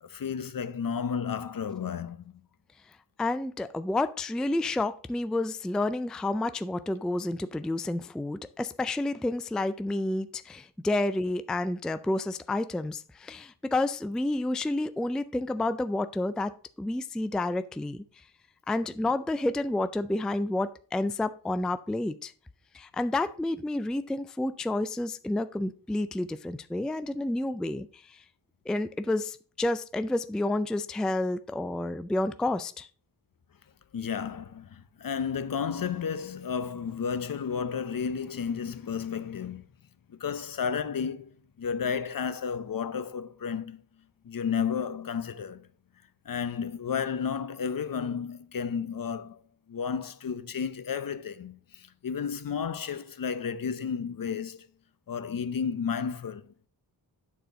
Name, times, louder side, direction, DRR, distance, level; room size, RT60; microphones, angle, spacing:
voice 1, 0.0-2.2 33.9-39.6 40.1-43.8 44.2-45.7 46.3-49.4 49.7-54.7 55.1-56.5, left 6 dB, 60° left, 0.7 m, -32 dB
voice 2, 3.2-18.0 18.7-22.3 22.7-28.2 28.7-32.9, left 2 dB, ahead, 0.3 m, -30 dB
9.2 x 4.3 x 4.9 m
wide cardioid pair, 105°, 39 cm